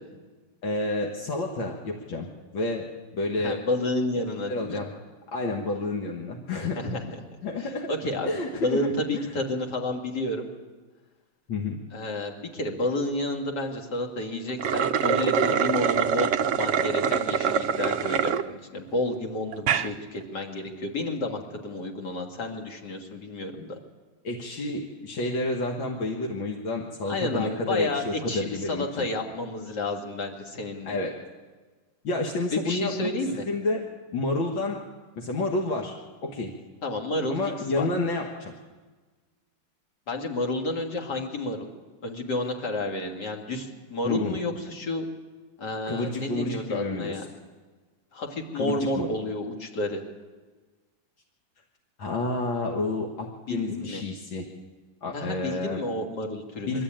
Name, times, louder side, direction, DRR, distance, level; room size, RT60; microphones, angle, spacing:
voice 1, 0.6-2.3 2.5-3.6 4.5-5.0 5.3-6.9 7.4-7.9 8.2-9.3 11.5-11.8 24.2-29.1 30.9-31.2 32.0-33.1 33.5-34.8 35.2-36.0 36.2-36.6 37.3-38.5 44.0-44.4 45.9-47.2 48.5-49.1 52.0-54.5 55.0-55.8 56.7-56.8, left 2 dB, 75° left, 1 dB, 2.3 m, -30 dB
voice 2, 3.4-4.8 6.6-7.2 7.6-8.3 8.6-10.5 11.9-16.3 16.6-23.8 27.1-30.9 32.5-33.4 36.8-37.4 37.7-37.9 40.1-41.7 42.0-45.0 45.6-47.3 48.1-50.0 53.5-54.0 55.1-56.8, left 1 dB, 55° left, 2 dB, 2.7 m, -30 dB
sound 1, 14.5-18.4 18.9-19.0 19.5-19.9, right 7 dB, 70° right, 0.7 m, -24 dB
23.0 x 13.0 x 8.9 m, 1.3 s
omnidirectional pair, 2.2 m